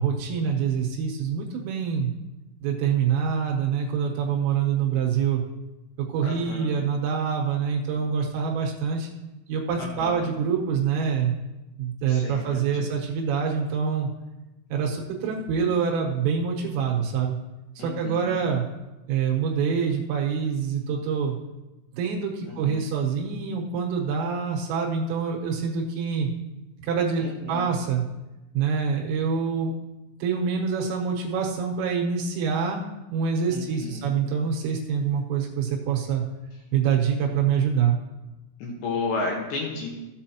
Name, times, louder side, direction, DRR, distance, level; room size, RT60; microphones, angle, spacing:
voice 1, 0.0-2.2 2.6-5.4 6.0-9.1 9.5-11.3 11.8-14.1 14.7-17.4 17.8-18.6 19.1-21.4 21.9-26.3 26.8-28.0 28.5-29.7 30.2-32.8 33.1-36.2 36.7-38.0, right 6 dB, 80° right, -1 dB, 3.8 m, -25 dB
voice 2, 6.2-6.9 9.8-10.3 12.1-12.9 17.8-18.4 22.5-22.9 27.2-27.7 33.5-34.2 38.6-39.9, left 3 dB, 70° left, -1 dB, 3.0 m, -33 dB
15.0 x 8.0 x 2.9 m, 1.0 s
omnidirectional pair, 6.0 m